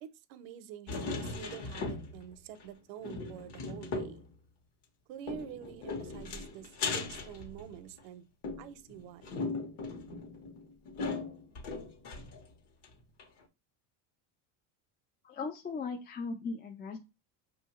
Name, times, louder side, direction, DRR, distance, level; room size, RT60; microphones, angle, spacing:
voice 1, 0.0-4.2 5.1-8.3 8.6-9.4, right 10 dB, 65° right, 0.7 m, -47 dB
sound 1, 0.9-2.3 2.6-2.7 3.0-4.3 5.3-8.0 8.4-12.5 12.8-12.9 13.2-13.3, left 3 dB, 55° left, 1.3 m, -38 dB
voice 2, 15.2-17.0, left 4 dB, 20° left, 0.4 m, -38 dB
5.4 x 2.7 x 3.0 m
supercardioid pair, 110°, 49 cm